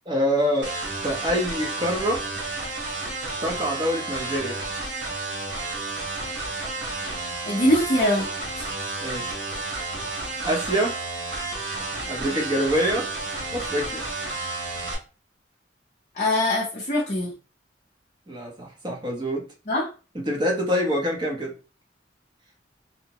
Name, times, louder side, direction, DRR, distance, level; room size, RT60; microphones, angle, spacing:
voice 1, 0.1-0.7 1.0-2.2 3.4-4.6 9.0-9.4 10.4-11.0 12.1-13.1 13.5-14.0 18.3-19.5 20.1-21.5, equal, 25° right, 0 dB, 0.7 m, -25 dB
sound 1, 0.6-14.9, right 3 dB, 80° right, 1.0 m, -31 dB
voice 2, 7.5-8.3 8.6-8.7 16.2-17.3 19.7-19.9, left 1 dB, 40° left, -5 dB, 0.6 m, -22 dB
2.7 x 2.0 x 2.8 m, 0.34 s
head